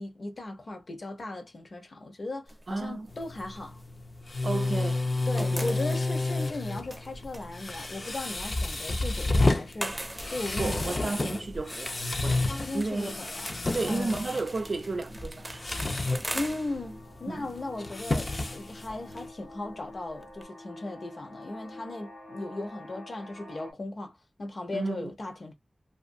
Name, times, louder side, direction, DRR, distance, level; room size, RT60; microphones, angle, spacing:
voice 1, 0.0-3.8 5.3-11.1 12.5-13.5 13.9-14.2 16.3-25.5, left 2 dB, 70° left, 0.7 m, -37 dB
sound 1, 2.5-4.7 5.0-20.4, right 1 dB, 15° right, 0.4 m, -43 dB
voice 2, 2.7-3.1 4.4-5.7 10.6-13.2 13.7-15.6 17.3-17.5 24.7-25.1, right 3 dB, 75° right, 0.4 m, -33 dB
sound 2, 3.1-19.3, left 2 dB, 50° left, 0.4 m, -31 dB
sound 3, 7.0-7.1 7.4-23.7, left 1 dB, 85° left, 1.1 m, -50 dB
2.5 x 2.3 x 2.5 m
wide cardioid pair, 70°, 0 cm